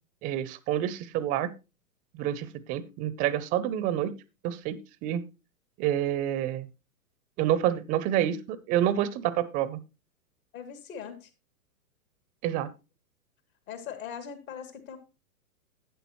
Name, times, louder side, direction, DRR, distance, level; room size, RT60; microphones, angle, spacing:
voice 1, 0.2-1.5 2.2-4.2 4.4-5.2 5.8-6.7 7.4-9.8 12.4-12.7, right 11 dB, 20° right, 0.5 m, -28 dB
voice 2, 10.5-11.3 13.7-15.0, left 7 dB, 65° left, 2.7 m, -40 dB
11.5 x 9.0 x 3.0 m
hypercardioid pair, 120°, 45 cm